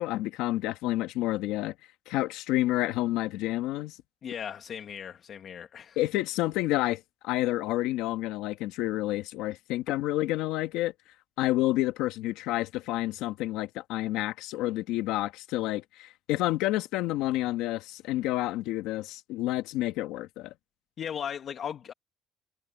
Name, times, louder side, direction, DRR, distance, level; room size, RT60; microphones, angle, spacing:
voice 1, 0.0-1.7 2.1-4.0 6.0-10.9 11.4-20.5, left 16 dB, 85° left, 1.7 m, -29 dB
voice 2, 4.2-6.0 21.0-21.9, left 8 dB, 45° left, 1.7 m, -37 dB
cardioid pair, 135°, 0 cm